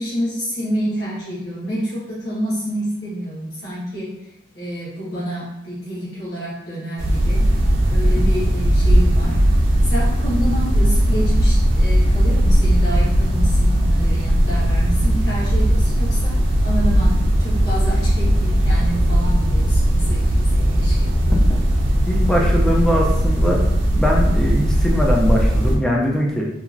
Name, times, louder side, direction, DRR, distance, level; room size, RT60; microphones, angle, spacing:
voice 1, 0.0-4.1 4.5-7.4 7.9-9.4 9.8-16.3 16.6-17.1 17.4-21.6, equal, 70° left, -10 dB, 1.2 m, -28 dB
sound 1, 7.0-25.8, equal, 80° right, 0.5 m, -17 dB
voice 2, 22.1-23.6 24.0-26.4, equal, 5° left, -2 dB, 0.3 m, -21 dB
2.9 x 2.4 x 2.4 m, 0.85 s
head